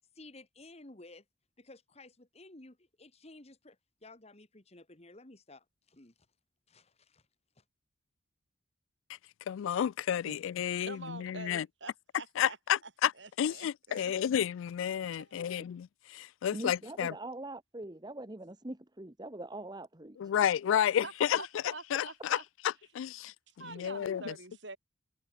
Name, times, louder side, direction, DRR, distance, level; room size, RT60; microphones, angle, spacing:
voice 1, 0.2-1.2 1.6-6.1 6.7-7.2 7.6-7.7, left 2 dB, 30° left, 1.7 m, -54 dB
voice 2, 9.5-11.7 12.4-13.1 13.4-17.1 20.2-24.3, left 9 dB, 75° left, 0.3 m, -31 dB
voice 3, 10.8-12.6 13.2-14.1 15.2-15.6 21.0-21.1 21.4-22.4 23.6-24.8, right 3 dB, 60° right, 4.7 m, -46 dB
voice 4, 16.5-20.2, right 1 dB, 20° right, 1.1 m, -42 dB
head